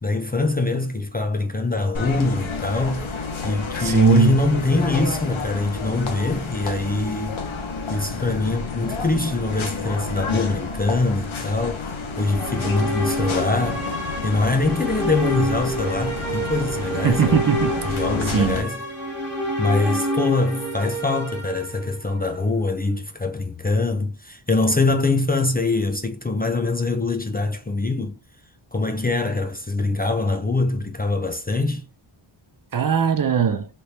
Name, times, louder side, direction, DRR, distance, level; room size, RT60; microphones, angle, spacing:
voice 1, 0.0-3.2 3.4-7.4 7.9-13.8 14.2-17.4 17.8-18.8 19.6-28.2 28.7-31.8, left 3 dB, 20° left, 0.4 m, -23 dB
sound 1, 1.9-18.6, left 4 dB, 75° left, 0.9 m, -30 dB
voice 2, 3.8-4.4 17.0-18.0 18.3-18.6 32.7-33.7, right 6 dB, 45° right, 0.5 m, -19 dB
sound 2, 12.1-22.3, equal, 20° right, 1.4 m, -28 dB
3.3 x 3.1 x 2.7 m
wide cardioid pair, 105°, 49 cm